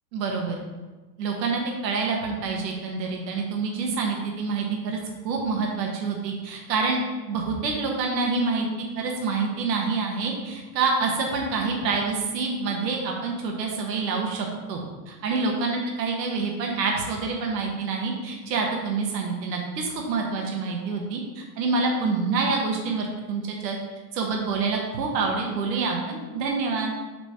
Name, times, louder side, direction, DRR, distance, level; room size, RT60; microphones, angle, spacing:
voice 1, 0.1-0.6 1.2-5.0 5.2-7.0 7.3-8.7 8.9-23.8 24.1-26.9, right 4 dB, 80° right, 1 dB, 1.4 m, -27 dB
6.0 x 3.3 x 5.7 m, 1.2 s
supercardioid pair, 155°, 49 cm